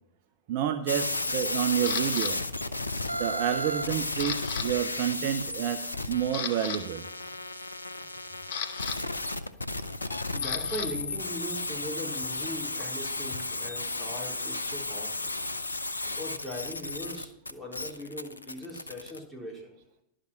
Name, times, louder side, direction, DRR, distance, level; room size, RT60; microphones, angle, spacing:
voice 1, 0.5-2.4 3.2-7.1, right 10 dB, 50° right, 9 dB, 0.6 m, -29 dB
sound 1, 0.9-19.2, left 2 dB, 90° left, 0.6 m, -34 dB
Camera, 1.8-2.3 2.9-3.3 3.6-4.7 4.9-5.1 5.7-5.8 6.2-6.8 8.0-10.9 11.2-13.8, left 8 dB, 60° left, 0.9 m, -37 dB
voice 2, 10.3-15.3 16.1-19.7, left 1 dB, 5° right, -3 dB, 4.1 m, -39 dB
12.0 x 5.1 x 7.4 m, 0.78 s
figure-of-eight pair, 95°, 0 cm